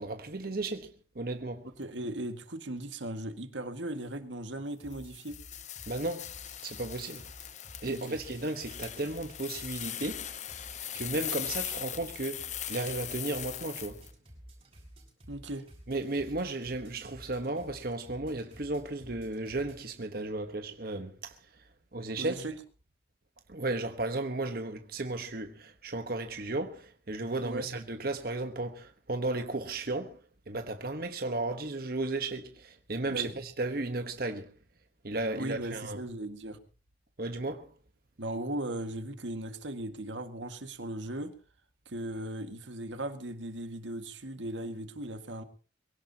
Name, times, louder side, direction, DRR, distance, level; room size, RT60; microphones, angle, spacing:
voice 1, 0.0-1.7 5.9-6.3 6.6-7.2 7.8-10.4 10.9-14.0 15.9-21.4 21.9-22.4 23.5-34.5 35.0-36.0 37.2-37.7, right 2 dB, 55° right, 1.2 m, -34 dB
voice 2, 1.8-5.4 7.9-8.2 15.3-15.7 22.1-22.6 27.4-27.7 33.1-33.3 35.3-36.6 38.2-41.3 41.9-45.4, right 1 dB, 90° right, 1.9 m, -37 dB
sound 1, 4.8-19.8, right 1 dB, 30° right, 6.7 m, -53 dB
sound 2, 4.9-14.1, left 11 dB, 40° left, 0.8 m, -40 dB
23.5 x 17.0 x 2.9 m
head